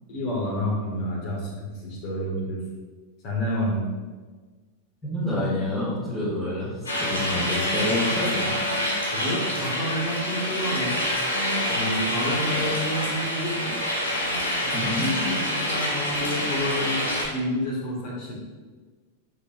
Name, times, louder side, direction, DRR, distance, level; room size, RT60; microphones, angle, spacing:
voice 1, 0.1-2.6 3.2-3.8 9.1-11.0 11.7-13.7 14.6-18.4, left 1 dB, 45° left, -2 dB, 2.1 m, -29 dB
voice 2, 5.0-8.5 14.7-15.1, left 1 dB, 10° left, -9 dB, 2.0 m, -28 dB
sound 1, 6.9-17.2, equal, 70° left, 1.5 m, -26 dB
9.5 x 4.9 x 2.6 m, 1.4 s
figure-of-eight pair, 90°, 0 cm